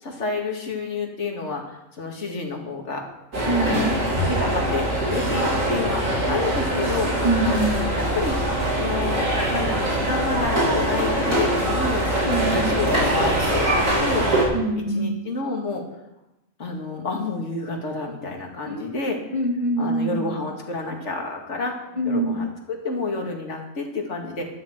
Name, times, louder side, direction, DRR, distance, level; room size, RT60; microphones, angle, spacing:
voice 1, 0.0-1.6 2.0-3.0 3.6-3.9 4.3-7.1 8.0-12.1 12.5-14.3 14.8-15.8 16.6-19.2 19.8-21.8 22.1-24.5, left 3 dB, 60° left, 2 dB, 2.3 m, -29 dB
sound 1, 3.3-14.4, right 1 dB, 80° right, 4.2 m, -23 dB
voice 2, 3.4-4.0 7.2-7.9 12.2-12.7 14.5-15.2 18.7-20.2 22.0-22.5, right 1 dB, 25° right, 2 dB, 1.9 m, -25 dB
12.5 x 12.0 x 4.4 m, 0.94 s
omnidirectional pair, 1.4 m